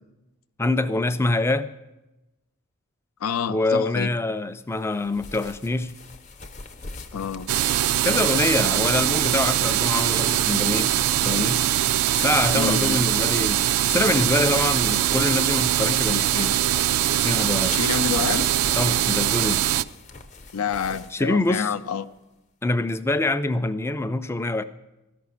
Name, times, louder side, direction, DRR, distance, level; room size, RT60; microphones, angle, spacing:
voice 1, 0.6-1.7 3.5-6.0 8.0-11.7 12.2-16.6 17.2-17.8 18.8-19.6 21.1-21.7 22.6-24.6, left 2 dB, 10° left, 0.3 m, -25 dB
voice 2, 3.2-4.1 7.1-7.5 12.5-13.1 17.7-18.5 20.5-22.0, left 6 dB, 75° left, 0.5 m, -28 dB
sound 1, 4.7-17.3 17.9-22.2, left 3 dB, 35° left, 0.7 m, -44 dB
sound 2, 7.5-19.8, right 12 dB, 80° right, 0.3 m, -22 dB
13.0 x 6.0 x 8.2 m
head